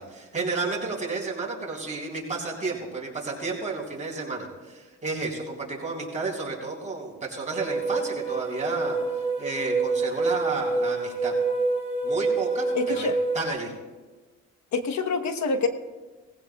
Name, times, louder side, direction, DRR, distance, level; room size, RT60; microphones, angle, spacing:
voice 1, 0.0-9.0 9.4-11.3 12.0-13.1 13.3-13.7, right 3 dB, 25° right, -3 dB, 3.9 m, -31 dB
sound 1, 7.5-13.5, right 3 dB, 20° left, 2.4 m, -27 dB
voice 2, 12.7-13.2 14.7-15.7, left 4 dB, 65° left, 6 dB, 1.2 m, -26 dB
19.0 x 16.0 x 2.3 m, 1.3 s
cardioid pair, 90°, 30 cm